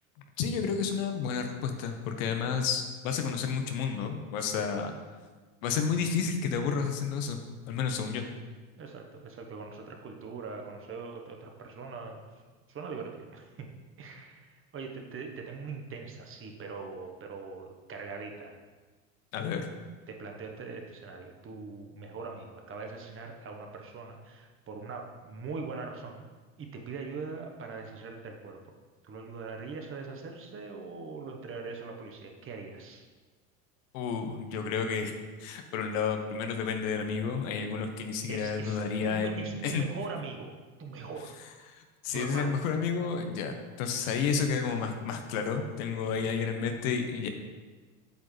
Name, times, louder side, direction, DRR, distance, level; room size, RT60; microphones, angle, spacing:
voice 1, 0.4-4.9 5.6-7.4 7.6-8.2 19.3-19.7 33.9-35.1 35.4-39.8 41.7-41.8 42.0-47.3, left 6 dB, 70° left, 5 dB, 1.1 m, -31 dB
voice 2, 4.5-4.8 7.8-8.1 8.8-12.2 12.7-13.7 14.0-18.6 20.1-26.2 26.6-28.7 29.0-33.1 38.3-40.5 40.8-41.3 42.1-42.5 46.1-46.3, right 4 dB, 30° right, 3 dB, 1.1 m, -41 dB
8.3 x 6.3 x 3.3 m, 1.3 s
supercardioid pair, 105°, 41 cm